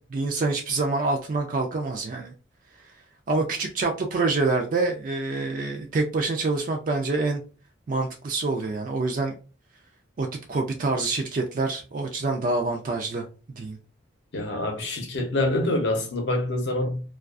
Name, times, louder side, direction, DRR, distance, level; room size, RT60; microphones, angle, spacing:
voice 1, 0.0-2.3 2.8-2.9 3.3-7.4 7.9-9.3 10.2-13.3 13.6-13.8, right 3 dB, 40° right, 0.3 m, -26 dB
voice 2, 14.3-17.0, left 1 dB, 60° left, 0.7 m, -26 dB
2.3 x 2.3 x 2.3 m
head